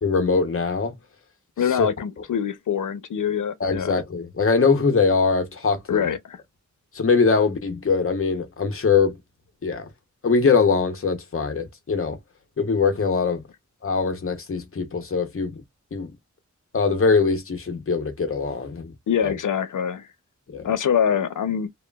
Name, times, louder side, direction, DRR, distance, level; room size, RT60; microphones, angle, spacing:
voice 1, 0.0-1.0 1.8-1.9 3.6-6.0 6.9-9.2 9.6-9.9 10.2-12.2 12.6-13.4 13.8-15.6 15.9-16.1 16.7-18.9 19.2-19.4 20.5-20.7, left 4 dB, 45° left, 0.7 m, -22 dB
voice 2, 1.6-4.0 5.9-6.4 19.1-20.1 20.6-21.7, left 8 dB, 85° left, 0.5 m, -24 dB
2.9 x 2.3 x 2.2 m
wide cardioid pair, 90°, 30 cm